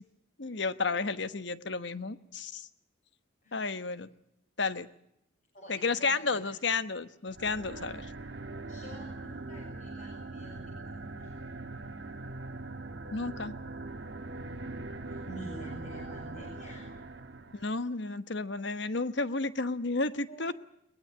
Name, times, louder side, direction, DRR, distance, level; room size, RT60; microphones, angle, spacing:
voice 1, 0.4-2.7 3.5-4.1 4.6-4.9 5.7-8.0 13.1-13.5 17.5-20.5, left 3 dB, 60° left, 13 dB, 1.2 m, -32 dB
voice 2, 3.4-3.7 5.5-6.6 7.7-7.9 8.7-11.4 15.1-17.0 20.3-20.5, right 1 dB, 40° left, -1 dB, 6.5 m, -49 dB
sound 1, 7.3-17.8, right 2 dB, 60° right, 1.4 m, -41 dB
22.0 x 20.0 x 8.6 m, 0.77 s
head